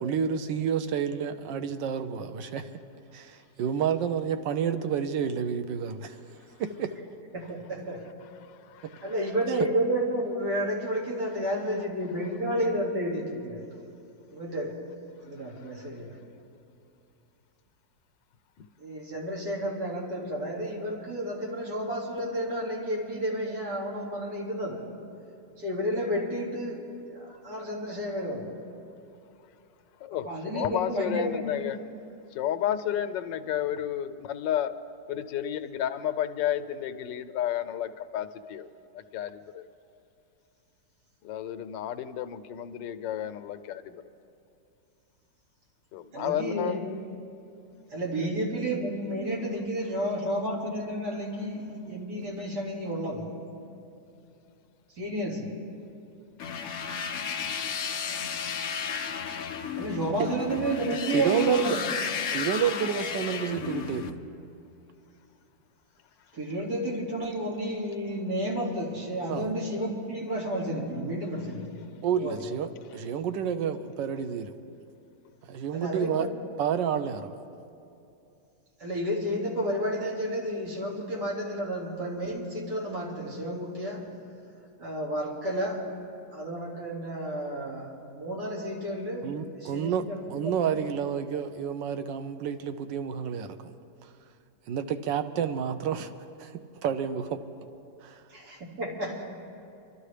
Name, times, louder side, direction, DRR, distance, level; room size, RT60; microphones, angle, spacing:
voice 1, 0.0-2.7 3.1-6.1 6.6-7.0 8.8-8.9 61.1-61.8 62.3-64.1 69.3-69.5 72.0-74.5 75.5-76.3 76.6-77.4 89.2-93.7 94.7-96.1 96.4-96.5 96.8-97.4 98.0-98.2, right 7 dB, 90° right, 9 dB, 1.4 m, -30 dB
voice 2, 7.3-8.0 9.0-13.7 14.3-14.7 15.2-16.2 18.8-24.9 25.6-28.5 30.2-31.5 46.1-46.8 47.9-53.3 55.0-55.6 59.8-61.8 66.3-71.8 72.2-72.4 75.7-76.3 78.8-84.1 84.8-85.8 86.3-90.2 90.4-90.5 98.3-99.2, right 1 dB, 60° right, -4 dB, 2.8 m, -31 dB
voice 3, 8.4-9.1 18.6-18.7 30.0-30.3 30.5-31.8 32.3-34.7 35.1-38.7 38.9-39.7 41.2-44.0 45.9-46.9, left 10 dB, 85° left, 10 dB, 1.3 m, -32 dB
sound 1, 56.4-64.1, left 6 dB, 60° left, 0.8 m, -33 dB
25.5 x 12.5 x 3.3 m, 2.7 s
omnidirectional pair, 1.9 m